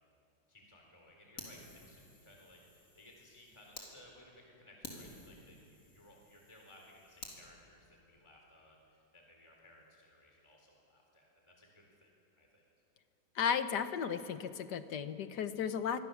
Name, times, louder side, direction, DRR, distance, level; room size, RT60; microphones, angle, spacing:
voice 1, 0.5-12.1 12.4-12.6, left 1 dB, 15° left, 0 dB, 4.0 m, -60 dB
Fire, 1.4-3.9 4.3-4.4 4.8-7.4, left 2 dB, 50° left, 4.0 m, -52 dB
voice 2, 13.4-16.0, left 7 dB, 65° left, 10 dB, 1.7 m, -34 dB
26.0 x 24.0 x 7.3 m, 2.8 s
omnidirectional pair, 2.0 m